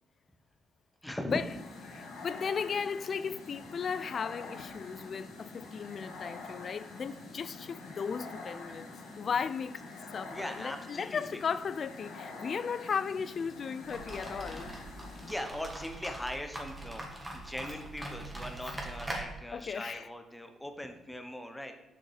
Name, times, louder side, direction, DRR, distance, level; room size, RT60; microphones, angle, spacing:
voice 1, 1.0-1.4 10.3-11.2 15.2-17.1 17.3-21.7, left 1 dB, 5° left, 1.0 m, -40 dB
sound 1, 1.3-15.3, left 3 dB, 75° left, 1.6 m, -46 dB
voice 2, 1.9-8.9 9.2-9.9 10.1-14.7 19.5-20.1, left 6 dB, 50° left, 0.4 m, -35 dB
sound 2, 13.8-19.2, right 1 dB, 10° right, 2.0 m, -42 dB
7.2 x 5.4 x 4.8 m
cardioid pair, 90°, 0 cm